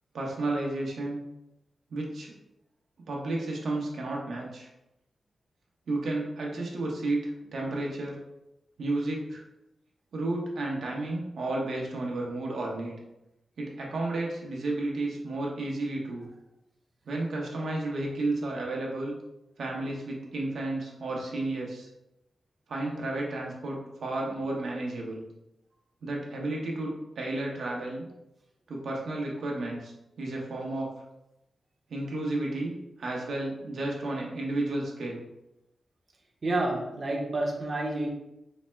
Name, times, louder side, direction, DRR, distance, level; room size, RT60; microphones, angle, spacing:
voice 1, 0.1-1.2 1.9-2.3 3.0-4.7 5.9-8.2 8.8-9.4 10.1-13.0 13.6-16.3 17.0-19.1 19.6-21.9 22.7-25.2 26.0-28.1 28.7-30.9 31.9-35.2, right 2 dB, 80° right, -2 dB, 0.9 m, -32 dB
voice 2, 36.4-38.1, right 2 dB, 45° right, 1 dB, 0.8 m, -29 dB
4.1 x 2.1 x 3.3 m, 0.89 s
cardioid pair, 80°, 0 cm